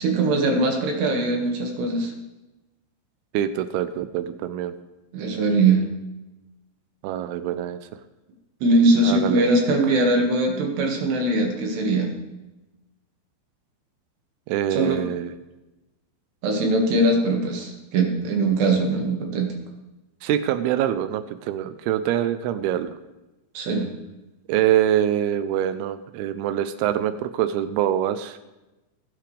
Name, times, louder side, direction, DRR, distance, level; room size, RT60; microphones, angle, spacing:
voice 1, 0.0-2.1 5.1-5.8 8.6-12.1 14.7-15.0 16.4-19.5 23.6-23.9, right 2 dB, 70° right, 1 dB, 3.8 m, -21 dB
voice 2, 3.3-4.7 7.0-7.8 9.0-9.4 14.5-15.3 20.2-22.9 24.5-28.4, right 11 dB, 85° right, 11 dB, 2.2 m, -24 dB
20.5 x 9.2 x 3.3 m, 1.0 s
omnidirectional pair, 5.3 m